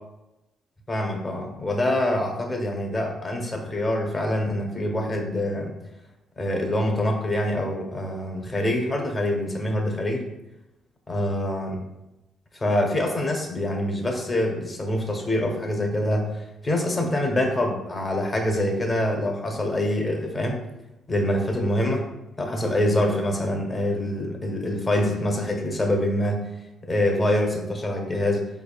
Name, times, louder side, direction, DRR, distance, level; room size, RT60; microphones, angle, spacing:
voice 1, 0.9-5.8 6.4-10.3 11.1-11.8 12.5-20.6 21.1-22.0 22.4-26.4 26.8-28.5, left 1 dB, 30° left, 2 dB, 0.8 m, -25 dB
4.1 x 3.4 x 2.3 m, 0.93 s
cardioid pair, 90°, 0 cm